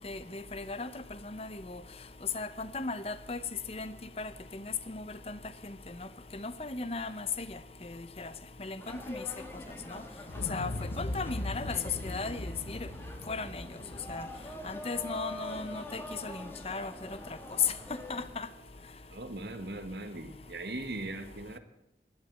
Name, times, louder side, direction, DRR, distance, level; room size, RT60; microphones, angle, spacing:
voice 1, 0.0-0.9 1.2-1.8 2.3-3.4 3.7-5.4 5.6-5.7 6.3-7.6 7.9-8.3 8.6-8.8 9.1-9.2 9.9-10.0 10.5-10.7 11.0-11.8 12.0-12.8 13.3-13.6 14.1-14.2 14.6-16.9 18.1-18.5, left 3 dB, 35° left, 14 dB, 0.8 m, -37 dB
sound 1, 8.8-18.3, left 1 dB, 15° left, 1.7 m, -45 dB
Explosion, 10.3-16.3 16.6-16.7, left 2 dB, 80° left, 0.9 m, -40 dB
voice 2, 19.1-21.6, right 2 dB, 65° right, 8 dB, 1.4 m, -39 dB
11.5 x 11.0 x 8.9 m, 0.82 s
head